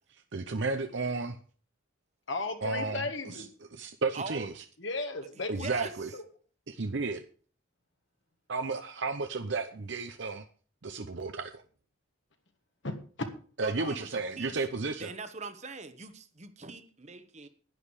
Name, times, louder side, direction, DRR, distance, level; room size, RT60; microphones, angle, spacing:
voice 1, 0.3-1.4 2.6-3.0 3.3-3.4 3.7-4.6 5.5-6.1 6.7-7.2 8.5-10.4 10.8-11.6 13.6-15.1, right 3 dB, 60° right, 0.7 m, -33 dB
voice 2, 2.3-3.5 4.8-5.7 6.1-6.2 12.8-13.3 13.8-14.0, left 2 dB, 65° left, 1.6 m, -35 dB
voice 3, 4.1-4.5 5.6-5.9 13.6-14.6 15.0-17.5, right 3 dB, 35° right, 1.1 m, -42 dB
11.0 x 10.5 x 4.9 m
head